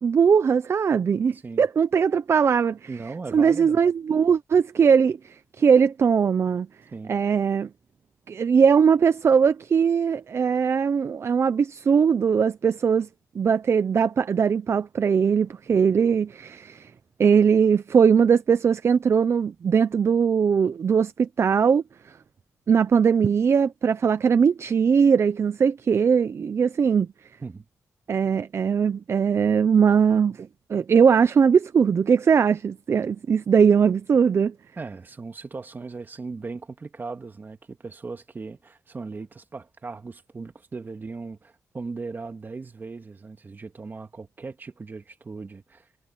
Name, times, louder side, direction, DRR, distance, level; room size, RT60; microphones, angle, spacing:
voice 1, 0.0-2.8 3.3-6.7 7.1-7.7 8.3-13.1 13.3-16.9 17.2-21.8 22.7-27.1 28.1-34.5, right 6 dB, 50° right, 0.6 m, -20 dB
voice 2, 1.3-1.7 2.9-3.8 6.9-7.1 27.4-27.6 34.8-45.9, right 4 dB, 35° right, 2.0 m, -38 dB
cardioid pair, 100°, 6 cm